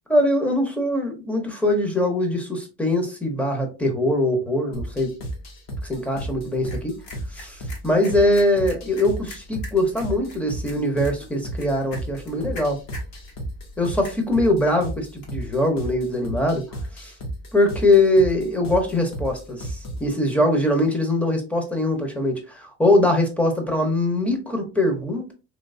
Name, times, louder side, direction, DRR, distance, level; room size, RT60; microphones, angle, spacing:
voice 1, 0.1-5.1 5.8-6.9 7.3-12.8 13.8-16.6 17.0-17.1 17.5-25.3, left 1 dB, 5° left, 3 dB, 0.8 m, -22 dB
sound 1, 4.7-20.1, right 1 dB, 45° left, 1.0 m, -34 dB
sound 2, 5.9-15.5, left 2 dB, 70° left, 1.8 m, -45 dB
3.2 x 3.0 x 2.6 m, 0.31 s
cardioid pair, 135°, 36 cm